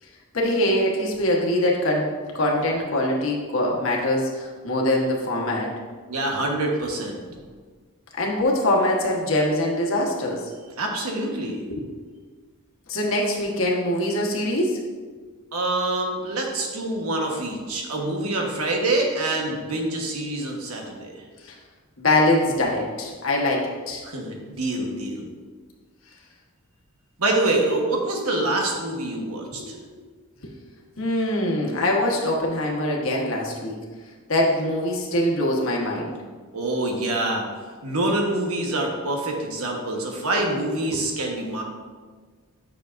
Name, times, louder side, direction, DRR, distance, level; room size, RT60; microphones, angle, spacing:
voice 1, 0.3-2.1 2.3-5.7 8.2-10.4 11.7-11.8 12.9-14.8 21.4-21.6 22.0-24.0 30.4-30.5 31.0-33.8 34.3-36.1 40.9-41.0, left 1 dB, 65° left, -2 dB, 1.3 m, -23 dB
voice 2, 6.1-7.2 10.8-11.6 15.5-21.2 24.0-25.2 27.2-29.8 36.5-37.4 37.8-41.6, right 2 dB, 85° right, 1 dB, 1.3 m, -26 dB
9.2 x 6.4 x 2.6 m, 1.5 s
head